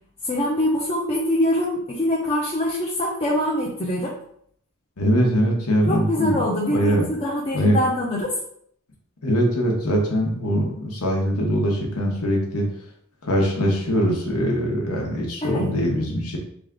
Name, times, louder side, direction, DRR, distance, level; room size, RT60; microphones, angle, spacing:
voice 1, 0.2-4.1 5.9-8.3 15.4-15.7, left 1 dB, 25° left, -4 dB, 0.5 m, -24 dB
voice 2, 5.0-6.4 6.7-7.0 7.5-7.8 9.2-12.7 13.2-16.4, equal, 85° left, -1 dB, 1.0 m, -22 dB
3.5 x 2.4 x 3.6 m, 0.67 s
head